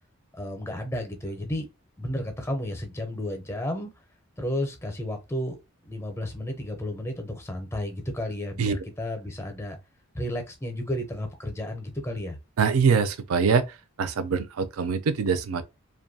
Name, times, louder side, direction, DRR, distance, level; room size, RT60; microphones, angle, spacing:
voice 1, 0.3-1.7 2.0-3.9 4.4-5.6 5.9-9.8 10.1-12.4, left 1 dB, 10° left, 0.5 m, -32 dB
voice 2, 12.6-13.6 14.0-15.6, right 5 dB, 70° right, 0.4 m, -23 dB
2.6 x 2.3 x 2.6 m
head